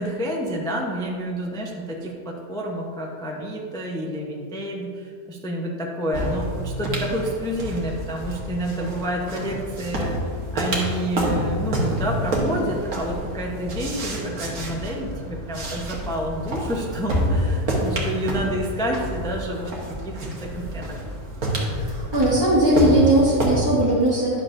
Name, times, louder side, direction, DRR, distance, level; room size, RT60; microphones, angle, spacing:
voice 1, 0.0-10.1 10.5-19.7 20.0-21.0, equal, 5° left, -1 dB, 0.4 m, -29 dB
sound 1, 6.1-23.6, right 1 dB, 65° right, 1.6 m, -28 dB
voice 2, 21.8-24.4, right 1 dB, 15° right, -10 dB, 1.3 m, -19 dB
10.5 x 6.4 x 2.6 m, 2.1 s
omnidirectional pair, 1.6 m